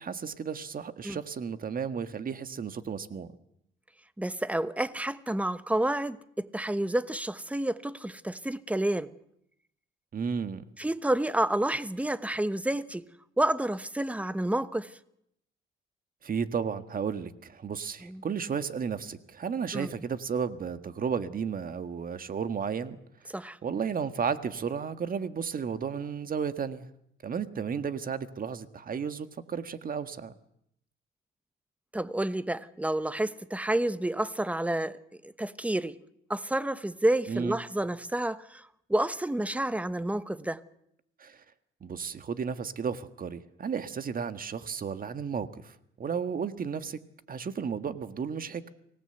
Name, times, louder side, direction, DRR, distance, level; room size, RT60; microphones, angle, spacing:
voice 1, 0.0-3.3 10.1-10.6 16.2-23.0 23.2-23.3 23.6-26.9 27.2-30.3 37.3-37.6 41.2-41.4 41.8-47.0 47.3-48.6, right 6 dB, 45° right, 1.6 m, -33 dB
voice 2, 4.2-9.1 10.8-13.1 13.4-15.0 18.0-18.2 19.7-19.9 23.3-23.6 31.9-36.0 36.3-40.6, right 1 dB, 5° right, 1.1 m, -29 dB
24.5 x 18.0 x 8.0 m
cardioid pair, 90°, 20 cm